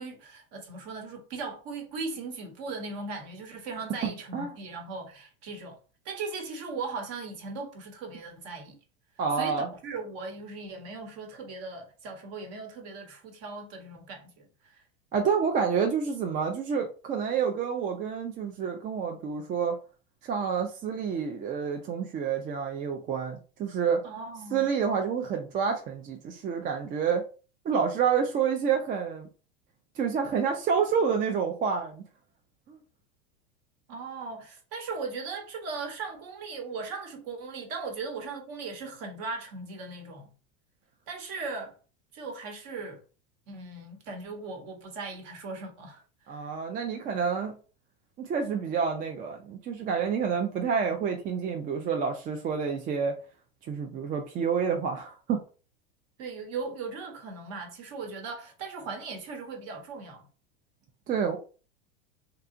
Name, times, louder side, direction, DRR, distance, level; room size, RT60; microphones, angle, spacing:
voice 1, 0.0-5.8 6.0-8.8 9.3-14.8 24.0-24.7 33.9-40.3 41.1-41.7 42.1-43.0 43.5-46.5 56.2-60.3, right 4 dB, 50° right, 1.0 m, -38 dB
voice 2, 4.0-4.5 9.2-9.7 15.1-19.8 20.2-24.0 24.5-27.2 27.6-29.3 30.0-32.0 32.7-32.8 46.3-47.6 48.2-53.1 53.7-55.4 61.1-61.4, right 6 dB, 25° right, 0.4 m, -28 dB
2.8 x 2.3 x 2.5 m
hypercardioid pair, 110°, 31 cm